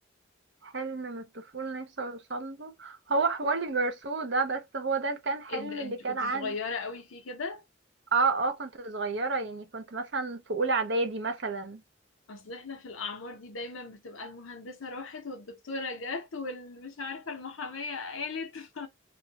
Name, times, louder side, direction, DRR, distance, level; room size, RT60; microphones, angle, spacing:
voice 1, 0.6-6.5 8.1-11.8, right 3 dB, 60° right, 0.8 m, -30 dB
voice 2, 5.5-7.6 12.3-18.9, left 4 dB, 85° left, 0.8 m, -38 dB
2.6 x 2.4 x 2.8 m
head